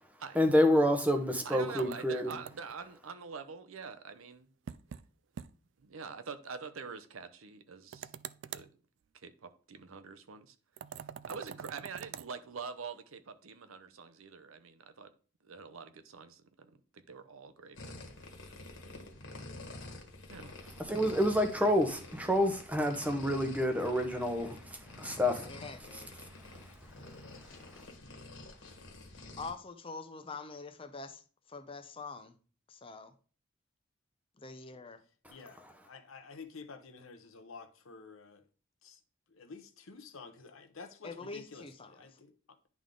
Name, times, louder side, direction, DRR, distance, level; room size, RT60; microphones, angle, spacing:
voice 1, 0.3-2.4 20.8-25.5 25.9-26.0 26.4-26.7 27.6-27.9, left 1 dB, 5° right, 0.9 m, -28 dB
voice 2, 1.4-4.5 5.8-8.1 8.5-8.7 9.1-10.5 10.9-15.1 15.4-16.7 17.1-17.8 20.3-20.5, right 5 dB, 85° right, 0.7 m, -45 dB
sound 1, 1.8-2.8 4.7-5.1 5.4-5.5 5.8-5.9 7.9-8.7 10.8-12.3, right 8 dB, 60° right, 0.3 m, -45 dB
sound 2, 17.7-29.5, left 2 dB, 65° left, 1.5 m, -48 dB
voice 3, 25.4-26.1 29.4-32.4 32.7-33.1 34.4-35.0 41.0-42.2, left 4 dB, 25° left, 0.6 m, -45 dB
voice 4, 35.8-38.4 38.8-39.0 39.3-42.3, left 4 dB, 80° left, 0.9 m, -50 dB
10.5 x 3.6 x 3.7 m
head